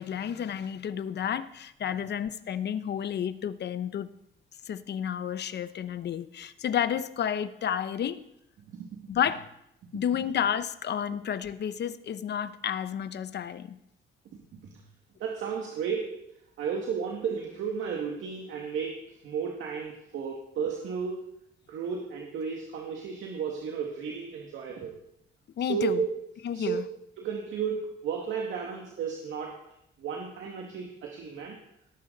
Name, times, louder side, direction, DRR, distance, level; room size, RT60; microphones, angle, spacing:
voice 1, 0.0-4.1 4.7-8.2 9.1-9.5 9.9-13.8 25.6-26.0 26.4-26.8, left 9 dB, 60° left, 13 dB, 0.9 m, -31 dB
voice 2, 15.2-16.1 16.6-19.0 19.2-21.2 21.7-24.9 25.6-26.1 26.5-26.8 27.2-29.5 30.0-31.6, right 6 dB, 80° right, -1 dB, 2.2 m, -33 dB
18.5 x 11.0 x 4.1 m, 0.77 s
cardioid pair, 90°, 20 cm